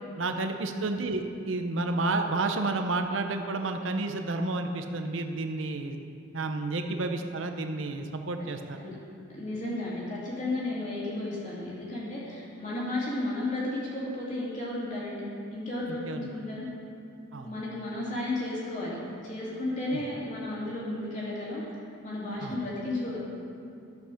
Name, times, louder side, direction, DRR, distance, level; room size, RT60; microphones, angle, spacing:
voice 1, 0.2-6.0 6.3-8.8 15.9-16.3 17.3-17.5 19.9-20.0 22.4-22.5, right 2 dB, 75° right, 6 dB, 0.7 m, -31 dB
voice 2, 9.3-16.7 17.4-23.2, left 2 dB, 35° left, -7 dB, 2.9 m, -33 dB
13.0 x 5.7 x 6.4 m, 2.5 s
head